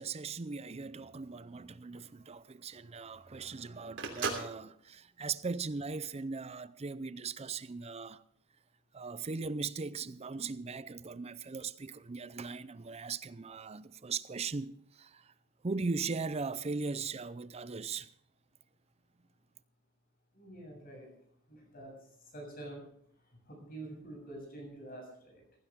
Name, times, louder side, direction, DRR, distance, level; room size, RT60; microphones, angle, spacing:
voice 1, 0.0-8.2 8.9-15.2 15.6-18.1, right 4 dB, 30° right, 0.5 m, -39 dB
Telephone, 1.1-6.3, right 4 dB, 60° right, 3.1 m, -41 dB
voice 2, 20.3-21.1 21.5-21.9 22.3-22.8 23.5-25.4, right 1 dB, 45° left, 7.4 m, -47 dB
16.0 x 16.0 x 3.6 m
head